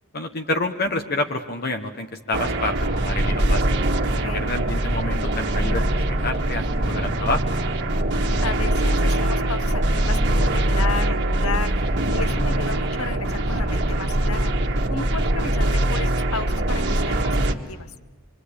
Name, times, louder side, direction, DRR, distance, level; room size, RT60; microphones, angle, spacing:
voice 1, 0.1-3.8 4.2-5.8 6.2-7.4, left 2 dB, 45° left, 5 dB, 1.2 m, -28 dB
sound 1, 2.3-17.5, right 1 dB, 50° right, 1.8 m, -22 dB
voice 2, 8.4-17.4 17.7-17.9, left 4 dB, 75° left, 13 dB, 1.2 m, -33 dB
26.5 x 24.0 x 8.6 m, 1.3 s
head